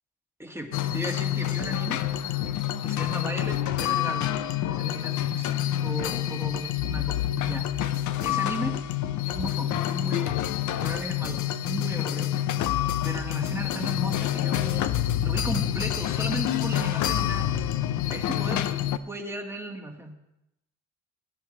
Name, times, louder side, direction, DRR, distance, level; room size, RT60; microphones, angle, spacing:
voice 1, 0.4-2.1 2.8-4.4 4.7-5.5 5.8-7.7 8.2-8.8 9.3-10.5 10.8-12.3 13.0-14.9 15.2-17.5 18.1-18.7 19.1-20.1, right 1 dB, 10° right, 3 dB, 1.8 m, -36 dB
sound 1, 0.7-19.0, left 12 dB, 75° left, 0.6 m, -27 dB
16.5 x 10.5 x 3.3 m, 0.88 s
cardioid pair, 90°, 30 cm